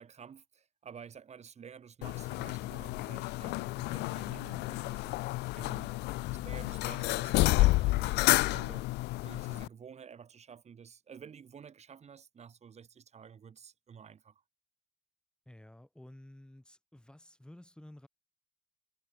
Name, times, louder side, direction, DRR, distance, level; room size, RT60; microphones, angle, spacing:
voice 1, 0.0-5.9 6.3-14.4, right 7 dB, 40° right, 5.7 m, -51 dB
sound 1, 2.0-9.7, left 21 dB, 80° left, 0.4 m, -30 dB
voice 2, 15.5-18.1, left 1 dB, 5° left, 5.6 m, -54 dB
cardioid pair, 110°, 17 cm